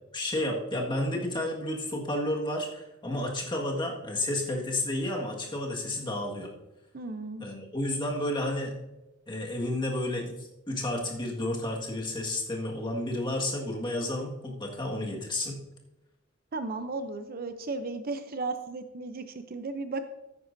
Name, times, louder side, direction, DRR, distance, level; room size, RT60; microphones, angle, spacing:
voice 1, 0.1-6.5 7.4-8.7 9.3-15.5, left 1 dB, 25° left, -1 dB, 1.7 m, -31 dB
voice 2, 6.9-7.5 16.5-20.0, right 3 dB, 45° right, 9 dB, 0.6 m, -35 dB
14.0 x 9.5 x 2.7 m, 0.97 s
head